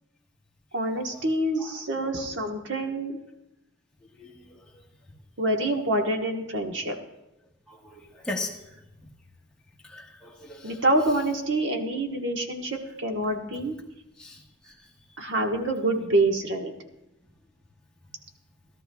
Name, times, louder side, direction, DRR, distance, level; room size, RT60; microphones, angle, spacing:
voice 1, 0.7-3.2 5.4-6.9 10.6-13.7 15.2-16.7, right 1 dB, 60° right, 3 dB, 1.3 m, -26 dB
voice 2, 7.7-8.5 9.9-10.8 14.2-14.4, left 2 dB, 5° left, -3 dB, 1.3 m, -37 dB
17.5 x 12.5 x 2.3 m, 0.92 s
head